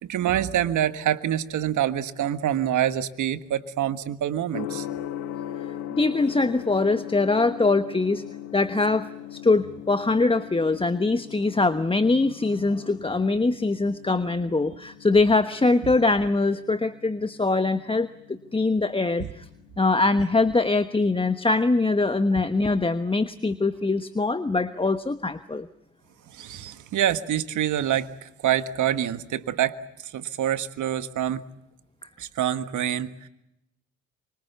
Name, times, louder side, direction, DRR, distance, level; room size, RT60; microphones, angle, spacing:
voice 1, 0.0-4.9 26.3-29.8 30.1-31.5 32.2-33.3, right 11 dB, 60° right, 11 dB, 1.6 m, -26 dB
Gong, 4.5-22.4, left 12 dB, 80° left, 1.4 m, -40 dB
voice 2, 5.9-8.2 8.5-19.5 19.8-25.7, left 3 dB, 15° left, 11 dB, 1.1 m, -23 dB
26.0 x 25.0 x 7.0 m, 0.87 s
hypercardioid pair, 45°, 34 cm